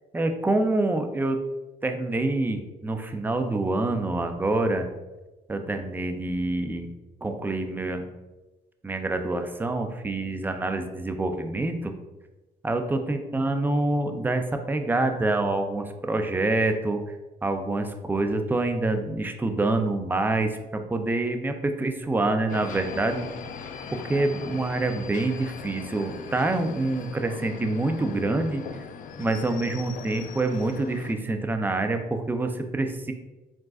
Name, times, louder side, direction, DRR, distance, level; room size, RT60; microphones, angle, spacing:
voice 1, 0.1-1.4 1.8-4.9 5.5-6.9 7.2-8.1 8.8-11.9 12.6-17.0 17.4-23.3 23.9-28.6 29.2-33.1, right 2 dB, 10° right, 6 dB, 0.4 m, -26 dB
sound 1, 22.5-31.1, left 6 dB, 50° left, 0.4 m, -40 dB
4.8 x 3.7 x 2.4 m, 1.1 s
cardioid pair, 110°, 17 cm